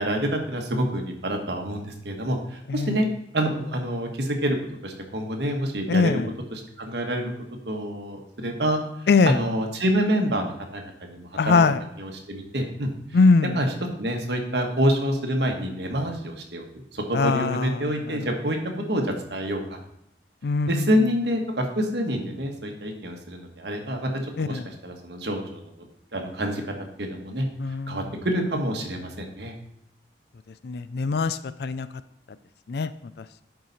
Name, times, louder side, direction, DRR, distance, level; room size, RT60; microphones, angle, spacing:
voice 1, 0.0-3.1 3.3-4.6 4.8-6.2 6.5-7.3 7.6-8.8 9.2-11.6 12.0-12.9 13.4-16.6 16.9-18.6 18.9-19.8 20.7-25.6 26.1-26.6 27.0-27.5 27.9-29.5, equal, 70° right, 2 dB, 1.4 m, -27 dB
voice 2, 5.9-6.3 9.1-9.4 11.4-11.8 13.1-13.6 17.1-18.3 20.4-20.9 24.4-24.7 27.6-28.0 30.6-31.9 32.7-32.9, left 4 dB, 60° left, 14 dB, 0.4 m, -22 dB
11.5 x 4.8 x 4.1 m, 0.76 s
head